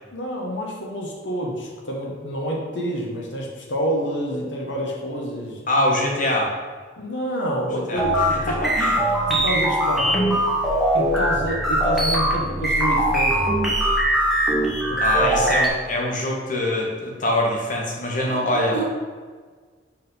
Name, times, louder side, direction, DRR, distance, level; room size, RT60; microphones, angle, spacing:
voice 1, 0.1-5.6 7.0-8.6 9.3-10.4 10.9-13.4 14.9-15.4 18.3-18.9, equal, 90° left, -1 dB, 1.4 m, -28 dB
voice 2, 5.7-6.5 7.9-9.1 15.0-18.8, left 1 dB, 45° left, -1 dB, 1.6 m, -23 dB
sound 1, 8.0-15.7, right 1 dB, ahead, 1.5 m, -21 dB
5.5 x 5.4 x 5.6 m, 1.5 s
head